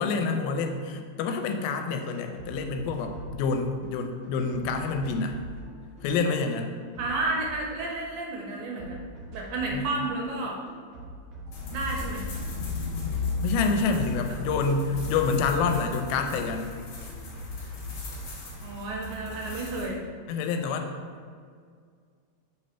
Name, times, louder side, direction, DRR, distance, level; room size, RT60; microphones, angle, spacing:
voice 1, 0.0-5.4 6.0-6.7 9.7-9.9 13.4-16.8 20.3-20.9, left 4 dB, 85° left, 5 dB, 2.3 m, -27 dB
sound 1, 1.3-1.4 1.7-3.9 4.2-8.2 8.5-10.0 10.3-12.5 12.8-16.8 17.1-18.4, right 2 dB, 55° right, 1.3 m, -44 dB
voice 2, 7.0-9.0 9.3-10.6 11.7-12.2 14.3-14.4 18.6-20.0, right 2 dB, 80° right, -1 dB, 2.4 m, -31 dB
sound 2, 11.5-19.9, left 3 dB, 65° left, 1.5 m, -35 dB
5.0 x 4.0 x 5.4 m, 2.1 s
omnidirectional pair, 4.3 m